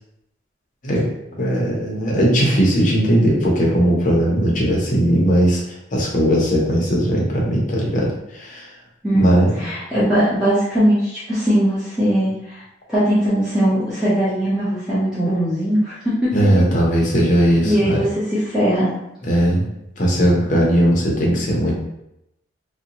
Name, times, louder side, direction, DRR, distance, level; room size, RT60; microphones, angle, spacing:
voice 1, 1.4-5.6 5.9-8.7 9.1-9.7 16.3-18.0 19.2-19.6 20.0-21.7, equal, 40° left, -3 dB, 0.7 m, -18 dB
voice 2, 9.6-12.6 12.9-16.3 17.6-18.1 18.3-18.9, equal, 5° right, -13 dB, 0.7 m, -19 dB
2.7 x 2.1 x 2.8 m, 0.85 s
head